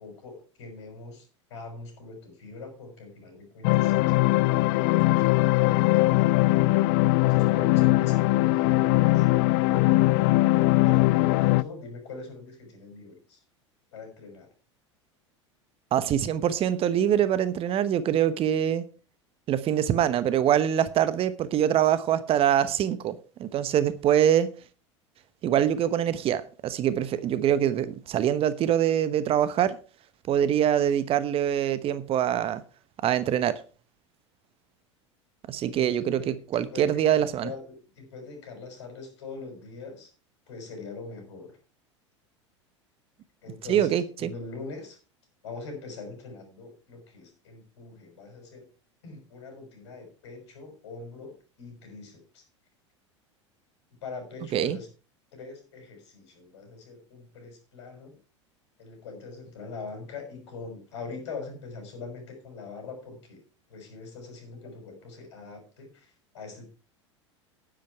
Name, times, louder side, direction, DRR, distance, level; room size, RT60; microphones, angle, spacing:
voice 1, 0.0-6.3 7.2-9.3 10.8-13.4 13.9-14.5 35.7-40.1 40.5-41.6 43.4-45.0 45.4-48.7 49.0-52.4 54.0-54.9 55.3-58.2 58.8-63.4 63.7-66.7, left 4 dB, 65° left, 6.0 m, -42 dB
sound 1, 3.6-11.6, left 20 dB, 50° left, 0.4 m, -21 dB
voice 2, 15.9-18.8 19.5-24.5 25.4-29.8 30.3-32.6 33.0-33.6 35.5-37.5 43.7-44.3 54.5-54.8, right 10 dB, 40° right, 1.1 m, -24 dB
10.5 x 10.5 x 4.6 m
figure-of-eight pair, 80°, 16 cm